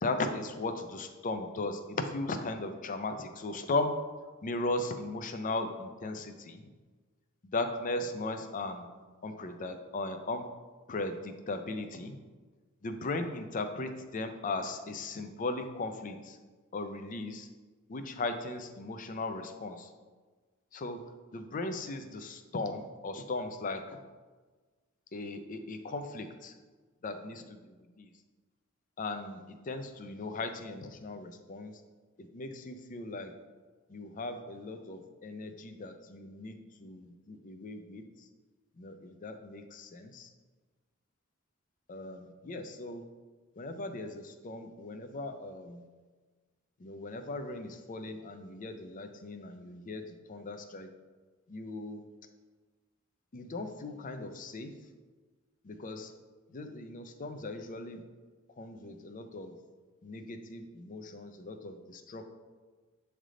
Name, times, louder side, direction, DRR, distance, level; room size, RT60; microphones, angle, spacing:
voice 1, 0.0-3.9 4.4-6.7 7.4-8.9 9.2-10.5 10.9-12.2 12.8-16.4 16.7-17.5 17.9-19.9 20.7-21.0 21.3-24.0 25.1-26.6 27.0-28.1 29.0-31.8 32.2-33.3 33.9-38.3 38.8-40.3 41.9-43.0 43.6-45.8 46.8-50.9 51.5-52.0 53.3-54.8 55.6-56.1 56.5-58.0 58.6-59.6 60.0-62.2, left 2 dB, 40° left, 7 dB, 0.5 m, -37 dB
7.6 x 3.4 x 3.7 m, 1.4 s
head